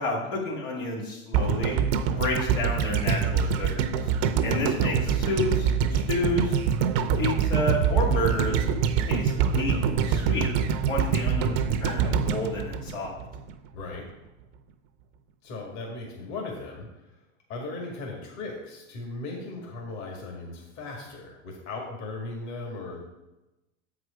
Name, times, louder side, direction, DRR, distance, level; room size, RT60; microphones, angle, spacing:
voice 1, 0.0-1.8 2.2-4.1 4.4-6.6 7.2-8.7 9.1-10.5 10.8-13.1, left 2 dB, 85° left, -3 dB, 2.6 m, -30 dB
sound 1, 1.3-13.5 13.8-13.9, right 7 dB, 55° right, 0.8 m, -25 dB
voice 2, 13.7-14.1 15.4-17.1 17.5-23.0, left 3 dB, 45° left, -1 dB, 1.9 m, -37 dB
7.3 x 4.8 x 5.0 m, 0.98 s
supercardioid pair, 120°, 37 cm